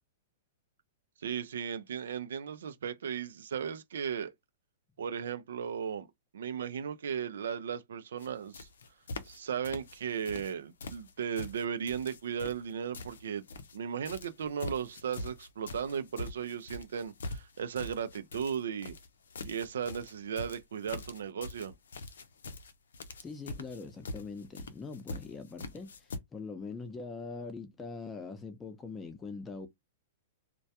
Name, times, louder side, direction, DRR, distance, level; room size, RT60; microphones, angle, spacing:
voice 1, 1.2-4.3 5.0-6.1 6.3-8.7 9.2-13.4 13.7-19.0 19.4-21.7, right 7 dB, 80° right, 0.4 m, -36 dB
sound 1, 8.2-8.3 8.5-9.4 9.6-10.5 10.8-13.8 14.0-26.2, left 2 dB, 85° left, 0.5 m, -43 dB
voice 2, 23.2-29.7, left 4 dB, 15° left, 0.6 m, -42 dB
2.2 x 2.1 x 2.8 m
hypercardioid pair, 135°, 0 cm